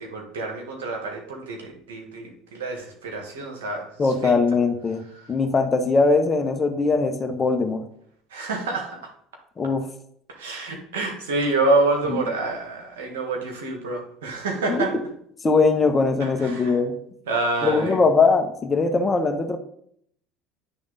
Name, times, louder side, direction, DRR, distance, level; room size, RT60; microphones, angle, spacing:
voice 1, 0.0-4.4 8.3-9.0 10.3-15.0 16.2-16.8 17.3-18.0, right 2 dB, 85° right, 2 dB, 1.6 m, -27 dB
voice 2, 4.0-5.0 5.3-7.8 9.6-9.9 12.1-12.2 14.7-14.9 15.4-17.0 17.6-19.6, left 4 dB, 30° left, 7 dB, 1.0 m, -21 dB
9.9 x 3.5 x 4.0 m, 0.68 s
hypercardioid pair, 80°, 0 cm